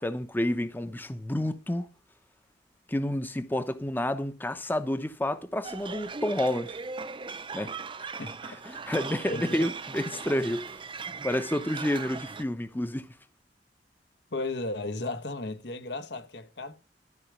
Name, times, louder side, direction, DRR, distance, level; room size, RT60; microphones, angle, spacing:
voice 1, 0.0-1.9 2.9-6.8 7.5-7.7 8.0-8.1 8.4-10.8 11.2-13.1, left 1 dB, 10° left, 0.7 m, -30 dB
sound 1, 5.6-12.4, right 5 dB, 30° right, 0.6 m, -39 dB
voice 2, 9.3-9.7 14.3-16.8, left 2 dB, 75° left, 1.4 m, -34 dB
13.0 x 4.9 x 8.2 m
head